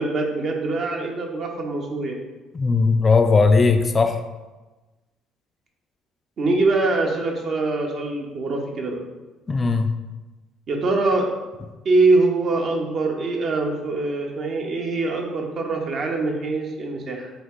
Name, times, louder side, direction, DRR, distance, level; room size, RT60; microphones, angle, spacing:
voice 1, 0.0-2.2 6.4-9.0 10.7-11.3 11.8-17.3, right 3 dB, 55° right, 1 dB, 0.7 m, -23 dB
voice 2, 2.5-4.2 9.5-9.9, left 4 dB, 35° left, 7 dB, 0.3 m, -18 dB
3.9 x 2.4 x 3.5 m, 1.2 s
hypercardioid pair, 60°, 0 cm